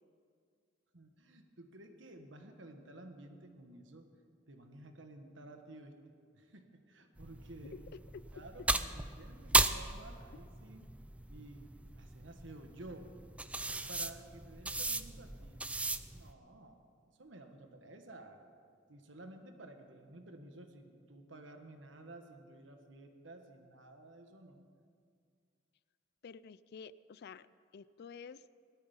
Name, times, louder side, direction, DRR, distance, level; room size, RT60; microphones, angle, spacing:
voice 1, 0.9-4.1 4.5-6.0 6.3-7.8 8.3-10.9 11.3-11.7 11.9-13.2 13.9-15.6 16.1-18.5 18.9-24.7, right 2 dB, 70° right, 5 dB, 1.4 m, -53 dB
sound 1, 7.2-16.3, right 2 dB, 5° right, 0.4 m, -36 dB
voice 2, 26.2-27.5 27.7-28.4, left 6 dB, 55° left, 17 dB, 0.4 m, -50 dB
18.0 x 12.5 x 5.6 m, 2.2 s
head